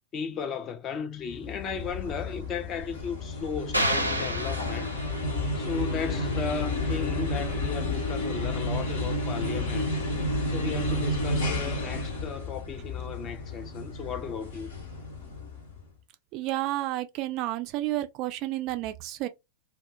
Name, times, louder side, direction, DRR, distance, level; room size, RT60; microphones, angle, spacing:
voice 1, 0.1-5.0 5.5-9.9 10.5-14.7, left 6 dB, 30° left, 0.5 m, -35 dB
sound 1, 1.3-15.8, left 2 dB, 65° left, 0.8 m, -31 dB
sound 2, 3.7-5.5, right 1 dB, 90° right, 0.6 m, -29 dB
voice 2, 16.3-19.3, right 16 dB, 40° right, 0.3 m, -31 dB
2.4 x 2.3 x 2.7 m
figure-of-eight pair, 90°, 0 cm